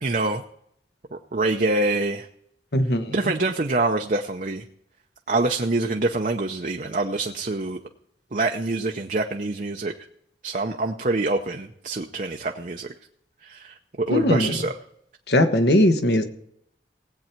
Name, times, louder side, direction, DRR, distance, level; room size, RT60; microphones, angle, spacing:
voice 1, 0.0-0.4 1.1-2.3 3.1-4.6 5.3-7.8 8.3-9.9 10.4-12.9 13.4-14.8, right 2 dB, 45° right, 3 dB, 0.7 m, -25 dB
voice 2, 2.7-3.0 14.1-14.5 15.3-16.2, left 1 dB, 70° left, 7 dB, 1.3 m, -19 dB
18.5 x 8.5 x 4.5 m, 0.73 s
head